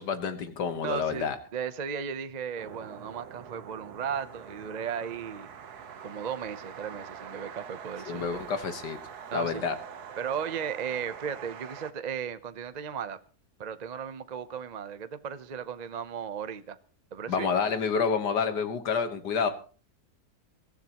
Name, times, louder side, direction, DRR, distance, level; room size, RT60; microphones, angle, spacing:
voice 1, 0.0-1.4 8.1-9.0 9.3-9.8 17.3-19.5, left 6 dB, 80° left, 1.9 m, -28 dB
voice 2, 0.8-5.5 6.0-8.4 9.3-9.6 10.2-13.2 13.6-16.8 17.1-17.5, right 7 dB, 50° right, 0.5 m, -36 dB
sound 1, 2.6-11.9, right 7 dB, 70° right, 1.6 m, -44 dB
23.0 x 14.0 x 3.0 m
omnidirectional pair, 1.8 m